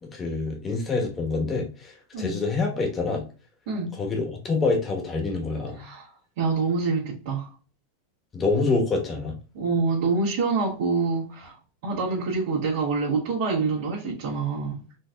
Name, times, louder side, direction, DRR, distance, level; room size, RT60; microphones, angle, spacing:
voice 1, 0.0-3.2 3.9-5.8 8.3-9.3, left 3 dB, 20° left, 1.1 m, -26 dB
voice 2, 5.7-6.1 6.4-7.5 9.5-14.8, right 4 dB, 65° right, 1.6 m, -26 dB
4.4 x 2.7 x 2.3 m
supercardioid pair, 135°, 0 cm